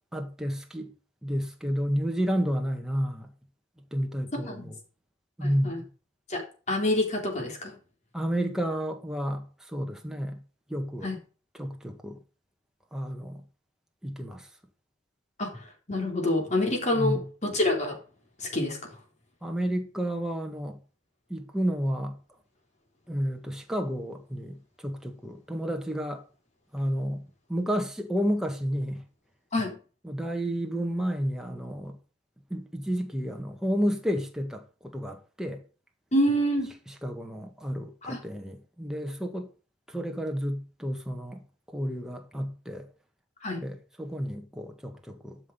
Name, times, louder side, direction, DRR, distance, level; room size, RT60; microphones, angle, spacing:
voice 1, 0.1-0.9 1.2-3.3 3.9-4.8 5.4-5.9 8.1-10.4 10.7-11.1 11.6-12.2 12.9-13.4 14.0-14.4 16.9-17.2 19.4-20.8 21.3-22.2 23.1-26.2 26.7-27.2 27.5-29.0 30.0-32.0 32.5-35.6 36.9-39.5 39.9-41.4 41.7-42.8 43.6-45.4, equal, 5° right, 1.7 m, -31 dB
voice 2, 5.4-5.8 6.3-7.8 11.0-11.2 15.4-18.0 18.4-18.8 29.5-29.8 36.1-36.7 38.0-38.2 43.4-43.6, left 1 dB, 35° left, 3.7 m, -27 dB
12.5 x 6.1 x 5.2 m
head